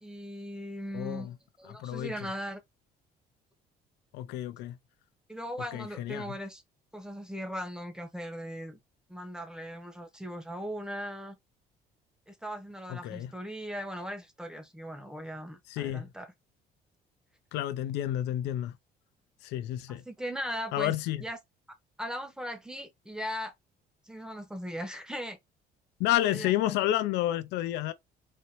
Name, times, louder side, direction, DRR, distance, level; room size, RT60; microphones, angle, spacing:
voice 1, 0.0-1.3 1.6-2.6 5.3-6.6 6.9-8.8 9.1-11.4 12.3-16.3 19.9-20.9 21.2-21.4 22.0-23.5 24.1-25.4 26.2-26.8, equal, 5° right, 1.1 m, -38 dB
voice 2, 0.9-1.4 1.7-2.1 4.1-4.8 5.7-6.3 12.9-13.3 15.7-16.1 17.5-18.7 19.4-20.0 20.7-21.2 26.0-27.9, left 13 dB, 90° left, 0.6 m, -30 dB
4.3 x 2.8 x 3.0 m
cardioid pair, 110°, 17 cm